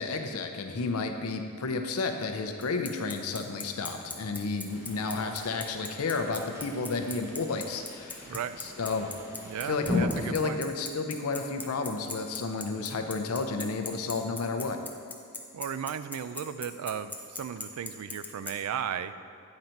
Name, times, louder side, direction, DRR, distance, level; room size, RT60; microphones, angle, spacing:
voice 1, 0.0-9.1 9.6-14.8, left 4 dB, 80° left, 6 dB, 0.6 m, -32 dB
Bicycle, 2.6-18.5, left 3 dB, 10° left, 0.5 m, -38 dB
sound 1, 4.7-10.0, left 2 dB, 15° right, 1.1 m, -40 dB
voice 2, 8.3-9.2 9.4-10.7 15.5-19.1, right 8 dB, 75° right, 14 dB, 0.3 m, -36 dB
8.7 x 4.0 x 4.4 m, 2.3 s
head